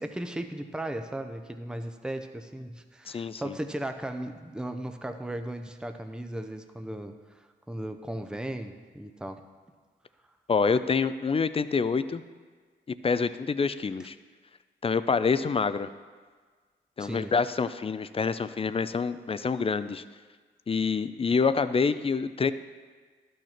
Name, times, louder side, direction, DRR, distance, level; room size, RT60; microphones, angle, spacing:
voice 1, 0.0-9.4 17.0-17.3, right 1 dB, 5° right, 7 dB, 0.7 m, -36 dB
voice 2, 3.1-3.6 10.5-12.2 13.0-14.2 14.8-15.9 17.0-20.0 20.7-22.5, left 5 dB, 30° left, 13 dB, 0.4 m, -26 dB
11.5 x 6.4 x 4.4 m, 1.5 s
cardioid pair, 60°, 19 cm